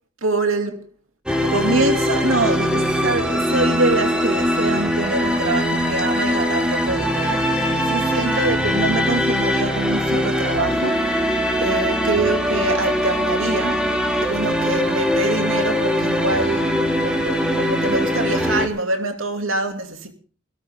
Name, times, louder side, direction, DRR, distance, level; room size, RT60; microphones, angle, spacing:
voice 1, 0.2-0.9 1.4-13.9 14.2-20.1, right 2 dB, 80° right, 2.6 m, -25 dB
sound 1, 1.3-18.7, equal, 5° right, 2.4 m, -21 dB
18.0 x 17.5 x 3.7 m
head